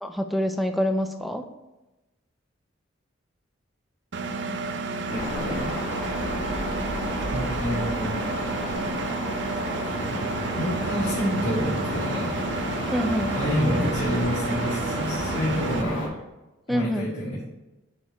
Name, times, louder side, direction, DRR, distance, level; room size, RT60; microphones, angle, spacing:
voice 1, 0.0-1.5 12.9-13.4 16.7-17.1, equal, ahead, 6 dB, 0.4 m, -26 dB
Engine, 4.1-15.8, right 3 dB, 65° right, 0.6 m, -31 dB
voice 2, 5.1-5.8 7.3-8.3 10.5-12.3 13.3-16.2 16.7-17.4, equal, 70° left, -9 dB, 1.9 m, -28 dB
sound 1, 5.1-16.1, equal, 45° left, 1.9 m, -32 dB
sound 2, 9.9-15.9, equal, 35° right, 1.9 m, -37 dB
8.7 x 4.5 x 3.5 m, 1.1 s
head